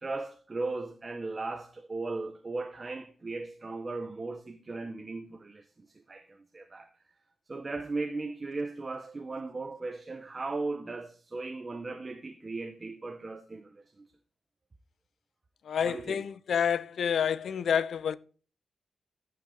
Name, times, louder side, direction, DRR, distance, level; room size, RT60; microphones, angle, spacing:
voice 1, 0.0-6.9 7.5-14.1 15.8-16.2, right 3 dB, 30° right, 0.8 m, -37 dB
voice 2, 15.7-18.2, left 7 dB, 75° left, 0.5 m, -28 dB
14.0 x 5.6 x 3.8 m
wide cardioid pair, 140°, 0 cm